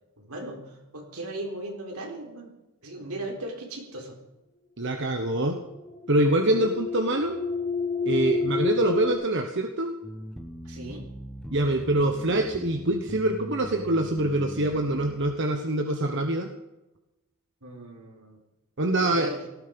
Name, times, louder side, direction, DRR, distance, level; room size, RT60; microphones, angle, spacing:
voice 1, 0.2-2.5 2.8-4.2 10.6-11.1 17.6-18.4 19.1-19.5, right 1 dB, 80° right, 1 dB, 4.2 m, -37 dB
voice 2, 4.8-5.6 6.1-7.4 8.1-9.9 11.5-16.5 18.8-19.3, right 1 dB, 55° right, 4 dB, 1.1 m, -25 dB
sound 1, 5.6-9.1, left 4 dB, 35° left, 4.6 m, -30 dB
sound 2, 10.0-15.2, equal, ahead, 1.6 m, -40 dB
18.0 x 14.0 x 5.4 m, 0.99 s
head